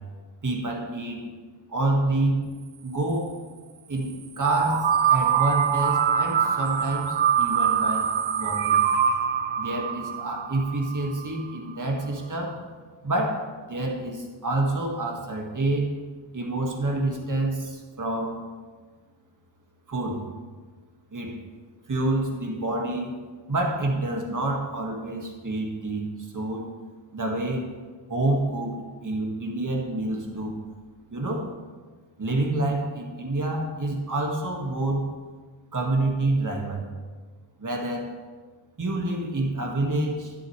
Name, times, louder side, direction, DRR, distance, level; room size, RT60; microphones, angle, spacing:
voice 1, 0.4-1.2 1.7-2.4 2.8-3.3 3.9-8.1 8.4-8.8 9.6-12.7 13.0-16.0 16.3-18.4 19.9-20.3 21.1-21.3 21.9-23.1 23.5-26.6 27.1-27.6 28.1-30.6 31.1-31.5 32.2-35.1 35.7-36.8 37.6-38.1 38.8-40.3, right 2 dB, 40° right, 0 dB, 1.9 m, -28 dB
sound 1, 4.4-11.2, right 8 dB, 70° right, 0.8 m, -24 dB
11.5 x 10.5 x 3.3 m, 1.4 s
wide cardioid pair, 110°, 47 cm